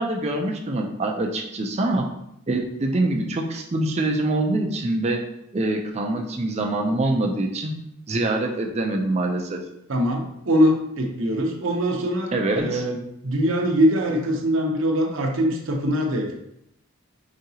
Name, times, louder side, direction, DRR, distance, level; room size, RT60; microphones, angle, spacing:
voice 1, 0.0-2.1 2.5-5.2 5.5-7.7 8.1-9.6 12.3-12.8, right 2 dB, 30° right, 2 dB, 0.4 m, -24 dB
voice 2, 9.9-16.3, equal, 60° right, 1 dB, 0.7 m, -23 dB
5.0 x 2.8 x 2.7 m, 0.79 s
head